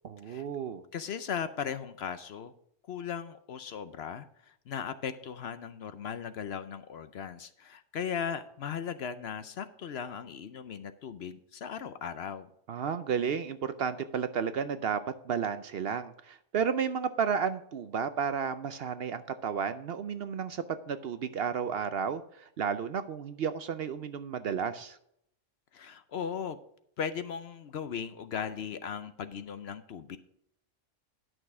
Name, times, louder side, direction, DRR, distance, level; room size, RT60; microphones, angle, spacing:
voice 1, 0.0-0.8 12.7-15.0 15.3-25.0, right 7 dB, 60° right, 11 dB, 0.7 m, -32 dB
voice 2, 0.9-2.5 2.9-12.5 25.7-26.6 27.0-30.2, left 7 dB, 60° left, 11 dB, 0.8 m, -37 dB
11.0 x 6.2 x 4.8 m, 0.72 s
omnidirectional pair, 1.3 m